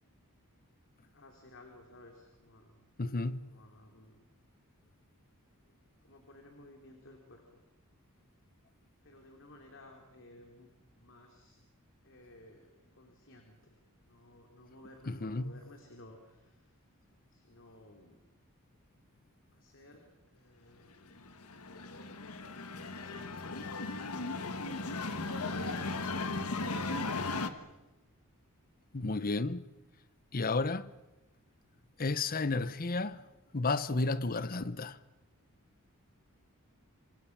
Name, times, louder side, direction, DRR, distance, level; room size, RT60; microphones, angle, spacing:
voice 1, 1.0-2.9 3.4-4.2 6.0-7.6 9.0-10.7 10.9-11.6 12.0-13.8 14.0-16.8 17.3-18.2 19.5-20.9 21.6-22.4 22.8-24.7 25.0-26.1 27.3-27.8, left 1 dB, 60° left, 3.2 m, -56 dB
voice 2, 3.0-3.4 15.1-15.5 28.9-29.6 30.3-30.9 32.0-33.2 33.5-35.0, left 3 dB, 40° left, 0.9 m, -32 dB
sound 1, 21.2-27.5, left 3 dB, 85° left, 1.6 m, -36 dB
27.5 x 26.0 x 6.0 m
head